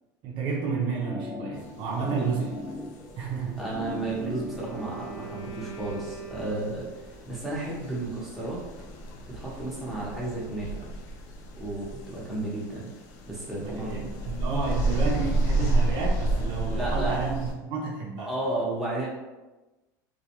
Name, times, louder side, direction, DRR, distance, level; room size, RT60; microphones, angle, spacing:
voice 1, 0.2-2.5 3.2-3.6 13.6-18.3, right 5 dB, 55° right, -2 dB, 0.5 m, -31 dB
sound 1, 0.6-5.6, left 2 dB, 25° left, 0.6 m, -39 dB
sound 2, 1.6-17.5, right 2 dB, 70° left, 0.4 m, -32 dB
voice 2, 2.0-2.3 3.6-8.6 9.3-10.8 11.6-12.9 13.3-14.1 16.7-17.2 18.2-19.1, right 2 dB, ahead, -7 dB, 0.9 m, -33 dB
Wind instrument woodwind instrument, 3.8-7.3, right 6 dB, 55° left, 0.8 m, -43 dB
2.2 x 2.2 x 2.8 m, 1.1 s
supercardioid pair, 100°, 10 cm